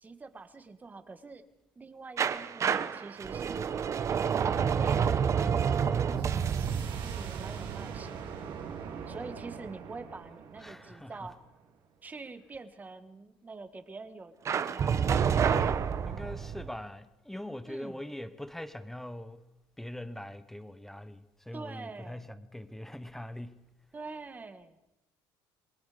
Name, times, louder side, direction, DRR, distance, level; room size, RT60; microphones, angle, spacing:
voice 1, 0.0-1.4 1.7-3.7 4.7-8.2 9.1-11.4 12.0-15.2 17.6-18.0 21.5-22.3 23.9-24.7, right 3 dB, 20° right, 1.7 m, -45 dB
sound 1, 2.2-8.9 14.4-16.7, right 7 dB, 35° right, 0.9 m, -29 dB
sound 2, 6.2-11.7, right 7 dB, 55° right, 4.0 m, -43 dB
voice 2, 10.6-11.3 16.0-19.5 19.8-23.6, left 1 dB, 5° left, 1.0 m, -42 dB
28.5 x 22.5 x 5.2 m
cardioid pair, 155°, 9 cm